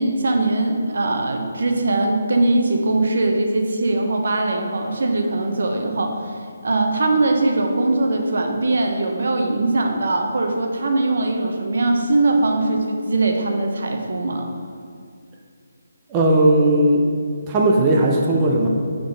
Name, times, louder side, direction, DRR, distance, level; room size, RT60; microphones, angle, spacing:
voice 1, 0.0-6.3 6.6-14.5, right 2 dB, 65° right, 3 dB, 0.7 m, -21 dB
voice 2, 16.1-17.1 17.5-18.7, right 1 dB, 20° right, -1 dB, 0.5 m, -17 dB
4.7 x 3.8 x 5.3 m, 2.2 s
figure-of-eight pair, 150°, 0 cm